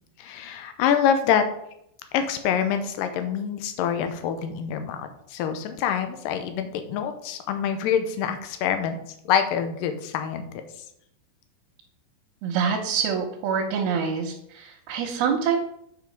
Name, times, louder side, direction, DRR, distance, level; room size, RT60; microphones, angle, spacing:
voice 1, 0.2-1.4 2.1-9.0 9.3-10.4, left 8 dB, 75° left, 8 dB, 2.3 m, -25 dB
voice 2, 12.4-15.6, right 6 dB, 85° right, -1 dB, 2.8 m, -26 dB
8.2 x 4.8 x 5.3 m, 0.73 s
omnidirectional pair, 4.3 m